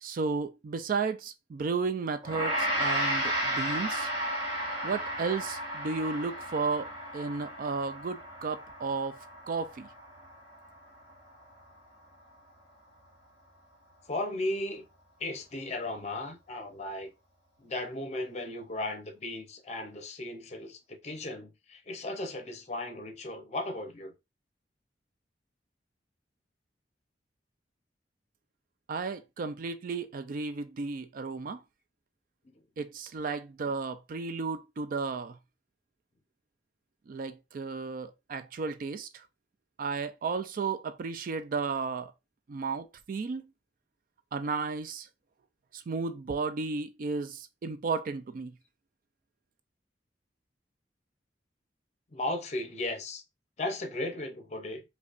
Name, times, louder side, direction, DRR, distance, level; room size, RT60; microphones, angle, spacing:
voice 1, 0.0-4.1 4.8-9.2 9.5-9.9 28.9-31.6 32.8-35.4 37.1-39.2 39.8-42.1 42.5-43.5 44.3-45.1 45.7-48.5, right 4 dB, 50° right, 0.4 m, -33 dB
Gong, 2.2-11.6, equal, 30° right, 1.7 m, -34 dB
voice 2, 14.1-14.9 15.2-17.1 17.6-24.1 52.1-53.2 53.6-54.8, left 2 dB, 40° left, 0.7 m, -36 dB
5.0 x 2.2 x 2.5 m
head